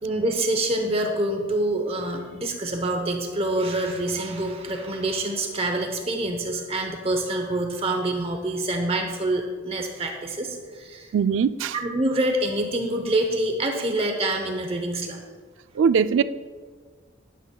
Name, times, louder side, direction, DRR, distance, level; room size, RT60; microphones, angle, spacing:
voice 1, 0.0-11.1 11.7-15.2, right 1 dB, 30° right, 0.8 m, -26 dB
voice 2, 11.1-11.7 15.8-16.2, right 6 dB, 75° right, 0.3 m, -20 dB
12.0 x 11.0 x 2.3 m
head